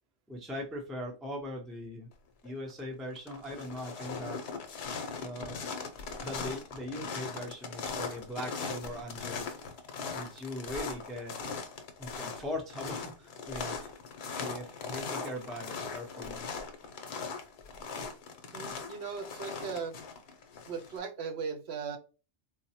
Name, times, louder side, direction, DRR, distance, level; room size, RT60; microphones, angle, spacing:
voice 1, 0.3-2.1 2.4-4.4 5.2-5.6 6.2-9.5 10.1-11.4 12.0-13.9 14.4-16.6, left 1 dB, ahead, 1 dB, 0.5 m, -40 dB
sound 1, 2.4-2.8 3.1-21.0, left 5 dB, 65° left, 0.9 m, -39 dB
voice 2, 18.5-20.0 20.7-22.0, right 5 dB, 65° right, 5 dB, 0.8 m, -38 dB
3.9 x 2.1 x 2.8 m, 0.33 s
omnidirectional pair, 1.3 m